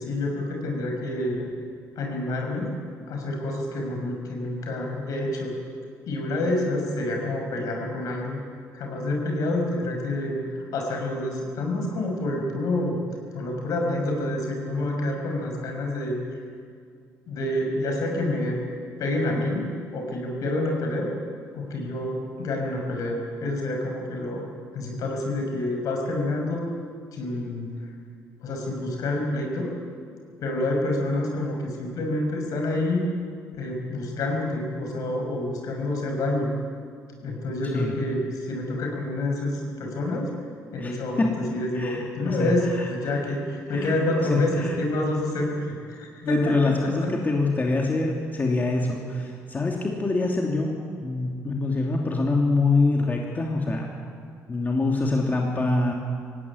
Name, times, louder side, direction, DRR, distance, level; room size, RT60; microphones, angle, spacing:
voice 1, 0.0-1.4 2.0-2.7 3.1-5.6 6.1-8.4 8.7-10.4 10.7-13.0 13.3-16.2 17.3-18.6 19.0-21.1 21.5-24.4 24.7-26.6 27.1-27.8 28.4-29.7 30.4-33.0 33.5-36.5 37.2-40.3 40.7-47.1, left 1 dB, 65° left, 2 dB, 5.9 m, -28 dB
voice 2, 40.8-41.4 41.7-42.9 43.7-44.0 44.3-44.7 46.2-53.9 54.5-55.9, left 3 dB, 30° left, 0 dB, 2.9 m, -25 dB
18.0 x 16.5 x 9.9 m, 2.2 s
supercardioid pair, 70°, 6 cm